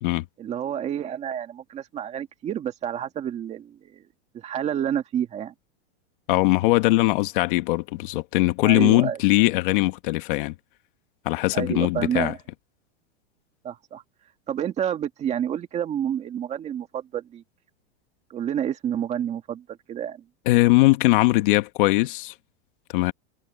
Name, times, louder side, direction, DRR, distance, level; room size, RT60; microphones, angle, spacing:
voice 1, 0.4-4.0 4.3-5.5 8.6-9.2 11.5-12.4 13.6-14.0 14.5-17.4 18.3-20.2, right 9 dB, 20° right, 2.0 m, -29 dB
voice 2, 6.3-10.5 11.2-12.3 20.4-22.3 22.9-23.1, left 20 dB, 50° left, 1.6 m, -20 dB
supercardioid pair, 165°, 32 cm